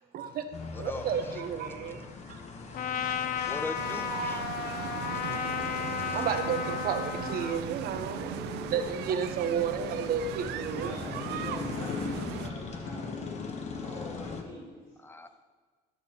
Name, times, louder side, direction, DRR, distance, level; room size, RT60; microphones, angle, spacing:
voice 1, 0.1-2.4 6.1-8.3 8.7-11.0, right 7 dB, 65° right, 7 dB, 0.8 m, -32 dB
sound 1, 0.5-14.4, left 4 dB, 40° left, 0.9 m, -40 dB
voice 2, 0.7-1.4 3.4-4.5 5.1-6.3 13.5-13.8 15.0-15.3, left 2 dB, 15° left, 9 dB, 0.6 m, -42 dB
Trumpet, 2.7-7.7, left 9 dB, 60° left, 0.5 m, -33 dB
sound 2, 3.7-12.5, right 12 dB, 80° right, 0.4 m, -38 dB
voice 3, 10.6-13.1 13.7-15.0, left 1 dB, 85° left, -9 dB, 2.8 m, -44 dB
12.5 x 6.5 x 2.8 m, 1.5 s
cardioid pair, 110°, 17 cm